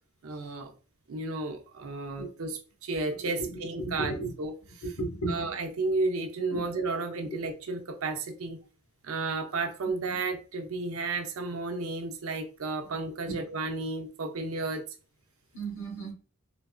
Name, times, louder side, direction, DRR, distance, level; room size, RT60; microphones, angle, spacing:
voice 1, 0.2-0.7 1.1-5.0 5.3-8.6 9.0-14.9, right 3 dB, 75° right, 0.6 m, -33 dB
voice 2, 3.8-4.3 5.0-5.5 6.5-6.6 15.5-16.1, right 2 dB, 70° left, 1.1 m, -33 dB
3.9 x 2.4 x 2.4 m
head